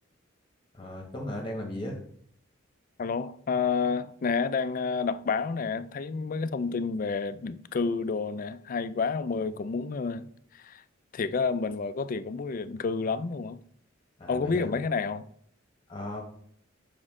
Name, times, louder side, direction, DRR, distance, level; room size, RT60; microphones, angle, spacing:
voice 1, 0.7-2.0 14.2-14.7 15.9-16.2, left 1 dB, 25° left, 1.1 m, -36 dB
voice 2, 3.0-10.8 11.1-13.6 14.3-15.3, left 5 dB, 45° left, 0.4 m, -30 dB
7.1 x 5.3 x 3.6 m
head